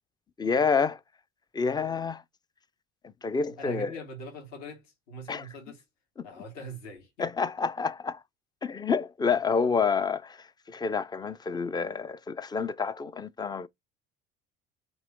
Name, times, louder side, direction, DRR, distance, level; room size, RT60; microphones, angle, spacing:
voice 1, 0.4-1.0 1.5-2.2 3.2-3.9 5.3-5.4 6.2-6.3 7.2-8.2 8.6-13.7, left 5 dB, 15° left, 0.4 m, -28 dB
voice 2, 3.6-5.8 6.2-7.2, right 1 dB, 55° left, 1.8 m, -42 dB
3.4 x 2.9 x 3.6 m
hypercardioid pair, 65°, 32 cm